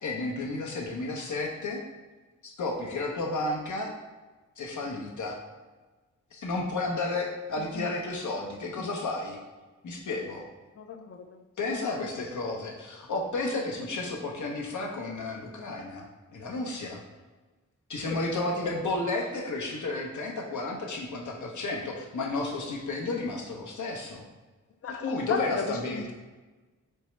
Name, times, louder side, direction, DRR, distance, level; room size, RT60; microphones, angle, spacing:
voice 1, 0.0-1.8 2.4-3.9 4.6-5.4 6.3-9.4 9.8-10.5 11.6-16.1 16.3-17.0 17.9-24.3 24.9-26.1, left 2 dB, 75° left, -1 dB, 0.8 m, -32 dB
voice 2, 10.8-11.4 11.7-12.1 18.1-18.2 18.6-18.7 24.8-26.1, left 5 dB, 50° left, 7 dB, 0.4 m, -34 dB
4.5 x 3.3 x 3.1 m, 1.2 s
wide cardioid pair, 115°, 30 cm